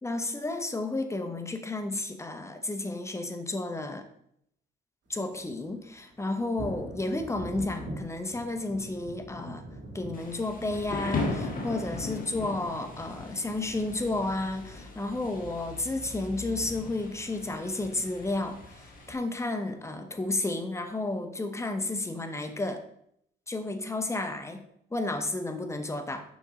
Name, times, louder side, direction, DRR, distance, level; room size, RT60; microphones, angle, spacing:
voice 1, 0.0-4.1 5.1-9.6 9.9-22.8 23.5-24.6 24.9-26.2, left 2 dB, 15° left, 7 dB, 0.9 m, -32 dB
sound 1, 5.3-18.9 20.1-20.2 20.7-20.8, right 1 dB, 65° right, 2.3 m, -45 dB
Thunder / Rain, 10.1-19.1, left 3 dB, 45° left, 1.7 m, -38 dB
7.2 x 5.3 x 3.7 m, 0.72 s
cardioid pair, 90°, 20 cm